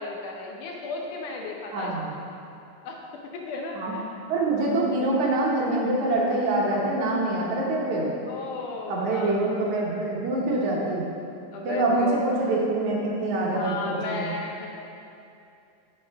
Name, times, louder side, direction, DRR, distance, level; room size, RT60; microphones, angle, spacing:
voice 1, 0.0-1.9 2.8-3.0 3.3-4.0 8.3-9.7 11.5-12.3 13.5-14.7, left 3 dB, 75° left, 0 dB, 2.2 m, -34 dB
voice 2, 1.7-2.1 3.8-3.9 4.3-8.1 8.9-11.1 11.6-14.4, right 2 dB, 70° right, -3 dB, 2.2 m, -25 dB
11.0 x 6.7 x 3.5 m, 2.6 s
omnidirectional pair, 3.9 m